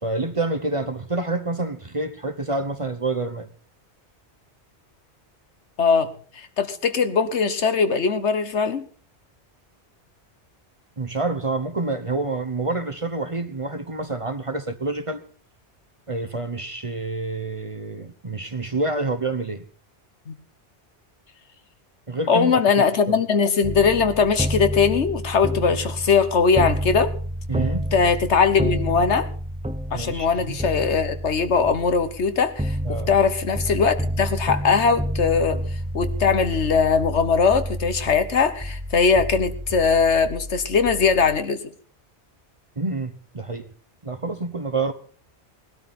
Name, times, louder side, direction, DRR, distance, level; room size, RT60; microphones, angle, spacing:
voice 1, 0.0-3.5 11.0-15.2 16.1-19.6 22.1-23.2 27.5-27.9 29.9-30.6 32.8-33.1 42.8-43.7 44.0-44.9, right 3 dB, 30° right, 0.9 m, -28 dB
voice 2, 5.8-8.8 20.3-20.4 22.3-27.1 27.9-29.3 29.9-41.6, left 5 dB, 80° left, 1.5 m, -20 dB
sound 1, 23.6-41.4, equal, 10° right, 0.5 m, -30 dB
19.0 x 12.5 x 4.2 m
omnidirectional pair, 1.2 m